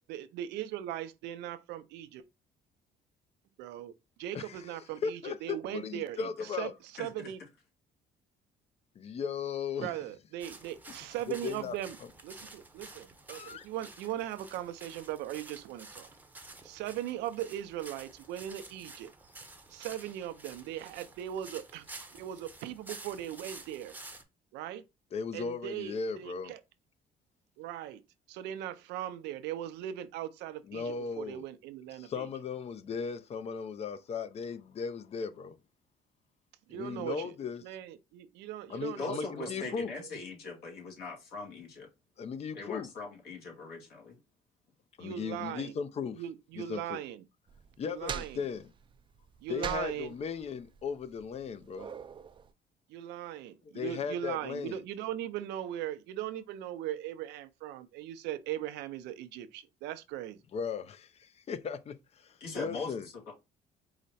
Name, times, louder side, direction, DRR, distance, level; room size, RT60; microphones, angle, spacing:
voice 1, 0.1-2.2 3.6-3.9 4.2-6.2 6.6-6.7 7.0-7.4 9.8-12.0 12.2-16.1 16.6-19.1 19.7-21.8 22.1-23.9 24.5-24.8 25.3-26.6 27.6-28.0 28.3-32.3 36.7-37.3 37.6-39.7 40.0-40.1 45.0-45.7 46.2-47.2 47.9-48.4 49.4-50.1 52.9-60.4, right 12 dB, 90° right, 0.5 m, -39 dB
voice 2, 4.3-6.7 9.0-10.0 11.3-11.7 13.3-13.7 25.1-26.5 30.6-31.4 31.9-35.6 36.7-37.6 38.7-39.9 42.2-42.9 45.0-46.2 46.6-47.0 47.8-48.7 49.5-51.9 53.7-54.8 60.5-63.1, left 6 dB, 40° left, 0.5 m, -37 dB
voice 3, 7.0-7.3 39.0-41.9 42.5-44.1 62.4-63.3, left 4 dB, 70° left, 2.2 m, -41 dB
sound 1, 10.4-24.2, right 2 dB, 10° right, 0.8 m, -50 dB
sound 2, 47.5-52.5, right 7 dB, 30° right, 0.4 m, -44 dB
4.8 x 2.1 x 4.1 m
cardioid pair, 110°, 17 cm